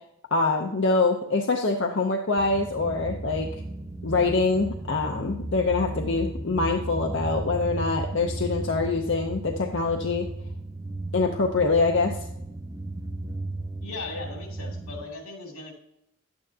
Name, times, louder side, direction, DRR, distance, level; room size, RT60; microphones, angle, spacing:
voice 1, 0.3-3.5 4.0-10.3 11.1-12.2, left 3 dB, 55° left, 3 dB, 0.6 m, -24 dB
sound 1, 2.4-15.0, right 2 dB, 15° right, 0.5 m, -35 dB
voice 2, 13.8-15.7, left 3 dB, 85° left, 1 dB, 2.8 m, -37 dB
11.5 x 8.8 x 2.8 m, 0.81 s
head